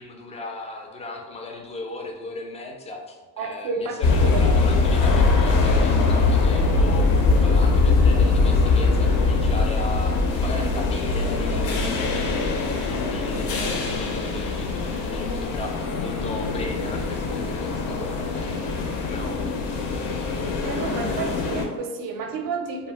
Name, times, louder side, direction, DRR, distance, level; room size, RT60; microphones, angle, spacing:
voice 1, 0.0-7.1 7.4-10.1 10.4-19.8, left 2 dB, 15° left, 2 dB, 0.3 m, -37 dB
voice 2, 3.4-4.4 20.6-22.9, right 5 dB, 50° right, 5 dB, 0.5 m, -31 dB
sound 1, 4.0-21.7, left 3 dB, 70° left, 0.6 m, -22 dB
2.2 x 2.1 x 3.2 m, 1.2 s
supercardioid pair, 85°, 45 cm